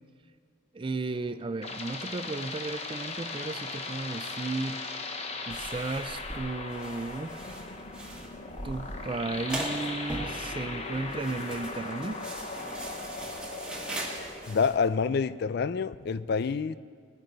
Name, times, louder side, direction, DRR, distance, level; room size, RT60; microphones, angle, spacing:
voice 1, 0.7-4.8 5.5-7.4 8.6-12.2, right 3 dB, 25° right, 11 dB, 0.4 m, -34 dB
sound 1, 1.1-14.7, left 3 dB, 35° left, 0.9 m, -39 dB
sound 2, 5.5-14.7, right 1 dB, 5° right, 1.5 m, -40 dB
sound 3, 7.4-14.3, left 2 dB, 85° left, 1.0 m, -45 dB
voice 2, 14.5-16.8, left 5 dB, 55° left, 16 dB, 0.4 m, -27 dB
19.5 x 9.7 x 4.0 m, 2.2 s
head